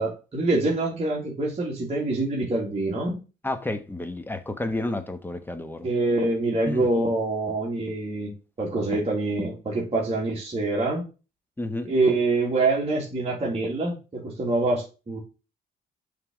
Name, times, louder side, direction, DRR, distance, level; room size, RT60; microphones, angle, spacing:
voice 1, 0.0-3.2 5.8-8.3 8.6-11.0 11.8-15.2, right 2 dB, 30° right, 1.9 m, -25 dB
voice 2, 3.4-5.9 6.7-6.9 11.6-11.9, left 1 dB, 10° left, 1.1 m, -31 dB
5.8 x 3.4 x 5.9 m
cardioid pair, 90°, 20 cm